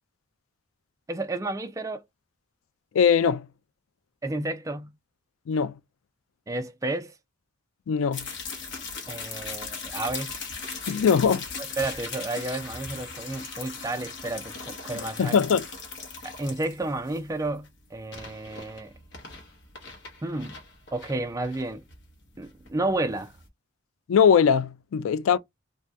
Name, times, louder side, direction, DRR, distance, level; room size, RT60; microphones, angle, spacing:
voice 1, 1.1-2.0 4.2-4.9 6.5-7.1 9.1-10.3 11.8-15.4 16.2-18.9 20.2-20.6 20.9-21.8 22.4-23.3, right 2 dB, 15° right, 0.4 m, -31 dB
voice 2, 2.9-3.5 5.5-5.7 7.9-8.3 10.9-11.4 14.9-15.6 24.1-25.4, left 7 dB, 85° left, 0.4 m, -21 dB
sound 1, 8.1-23.5, left 4 dB, 60° left, 1.0 m, -39 dB
2.7 x 2.3 x 3.3 m
head